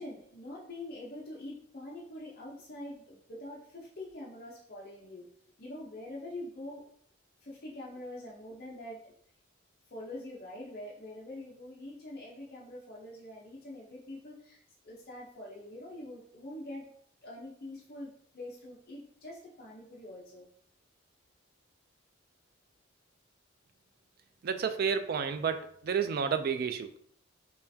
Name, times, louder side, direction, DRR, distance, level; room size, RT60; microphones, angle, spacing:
voice 1, 0.0-5.3 5.6-6.8 7.4-9.1 9.9-14.6 14.8-16.9 17.2-20.5, left 1 dB, 45° left, 0.7 m, -44 dB
voice 2, 24.4-26.9, right 6 dB, 50° right, 0.3 m, -31 dB
5.5 x 2.4 x 2.7 m
head